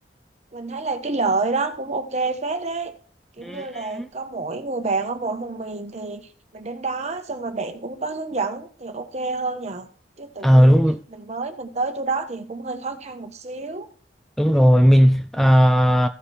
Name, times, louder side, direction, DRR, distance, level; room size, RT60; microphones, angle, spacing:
voice 1, 0.5-2.9 3.4-6.2 6.5-9.9 10.2-10.8 11.1-13.9, right 3 dB, 40° right, 1.1 m, -28 dB
voice 2, 3.4-4.1 10.4-11.0 14.4-16.1, equal, ahead, 0.4 m, -16 dB
15.0 x 5.2 x 4.2 m
head